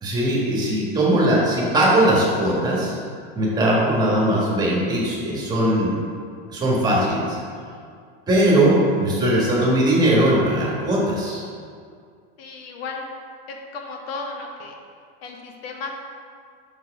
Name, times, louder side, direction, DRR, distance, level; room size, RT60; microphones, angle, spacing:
voice 1, 0.0-3.0 3.3-5.9 6.5-7.4 8.3-11.4, right 1 dB, 15° right, -5 dB, 1.6 m, -19 dB
voice 2, 12.4-13.1 13.5-14.7 15.2-15.9, left 4 dB, 80° left, 2 dB, 1.2 m, -34 dB
5.5 x 4.7 x 5.9 m, 2.2 s
supercardioid pair, 160°, 30 cm